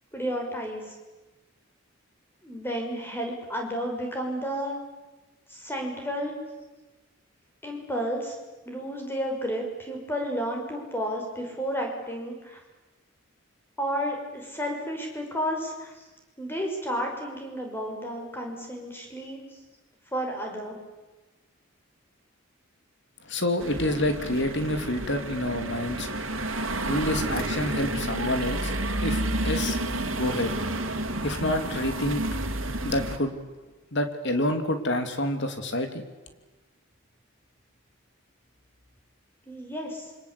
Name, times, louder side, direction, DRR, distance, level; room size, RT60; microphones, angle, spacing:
voice 1, 0.1-0.9 2.4-4.8 5.5-6.3 7.6-8.4 8.6-12.6 13.8-16.1 16.4-19.6 20.1-20.8 39.5-40.1, equal, 10° left, 1 dB, 5.9 m, -32 dB
voice 2, 23.3-26.1 26.6-28.7 29.0-29.8 30.0-30.9 31.2-32.2 32.8-33.3 33.9-36.0, left 1 dB, 55° left, 7 dB, 3.0 m, -28 dB
sound 1, 23.6-33.2, right 1 dB, 65° right, 2.9 m, -30 dB
26.5 x 25.0 x 8.5 m, 1.2 s
head